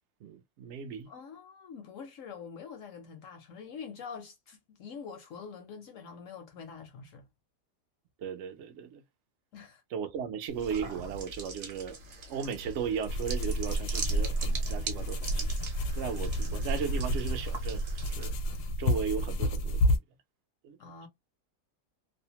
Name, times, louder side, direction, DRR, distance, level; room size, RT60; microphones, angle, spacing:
voice 1, 0.2-1.1 8.2-9.0 9.9-12.0 12.3-15.5 15.9-17.8 18.1-18.3 18.8-19.8 20.6-20.8, right 7 dB, 75° right, 0.6 m, -36 dB
voice 2, 1.1-7.3 9.5-9.8 16.4-16.7 20.8-21.1, left 6 dB, 65° left, 0.8 m, -45 dB
sound 1, 10.5-18.6, right 3 dB, 50° right, 0.9 m, -41 dB
sound 2, 13.1-20.0, equal, 85° left, 1.1 m, -30 dB
2.7 x 2.0 x 2.8 m
omnidirectional pair, 1.7 m